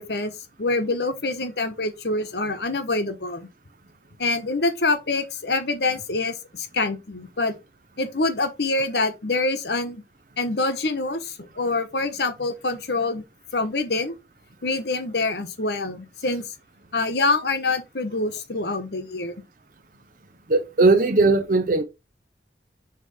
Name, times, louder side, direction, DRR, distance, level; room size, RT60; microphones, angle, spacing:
voice 1, 0.0-3.5 4.2-7.5 8.0-10.0 10.4-13.2 13.5-14.1 14.6-16.5 16.9-19.3, left 3 dB, 65° left, 1.2 m, -25 dB
voice 2, 20.5-21.8, right 3 dB, 50° right, 0.7 m, -18 dB
6.7 x 3.3 x 4.9 m
head